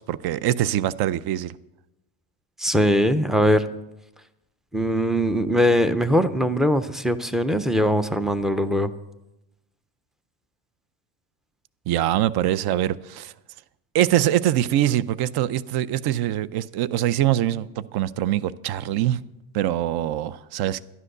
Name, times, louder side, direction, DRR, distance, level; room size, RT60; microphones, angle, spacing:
voice 1, 0.0-1.5 11.9-13.3 13.9-19.2 19.5-20.9, right 12 dB, 55° right, 0.6 m, -23 dB
voice 2, 2.6-3.7 4.7-8.9, equal, ahead, 0.4 m, -21 dB
12.5 x 11.0 x 6.6 m
cardioid pair, 135°, 46 cm